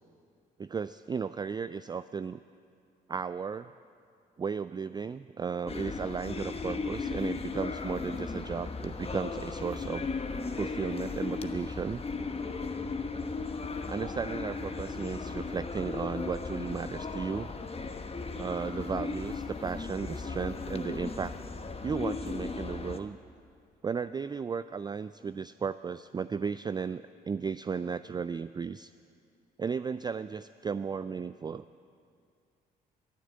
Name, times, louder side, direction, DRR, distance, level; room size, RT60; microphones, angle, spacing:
voice 1, 0.6-2.4 3.1-3.7 4.4-10.1 10.6-12.0 13.9-17.5 18.3-21.3 21.8-23.2 23.8-28.9 29.6-31.6, right 6 dB, 20° right, 14 dB, 0.3 m, -35 dB
sound 1, 5.7-23.0, left 4 dB, 30° left, 1.1 m, -36 dB
13.5 x 11.0 x 8.8 m, 2.3 s
hypercardioid pair, 50°, 21 cm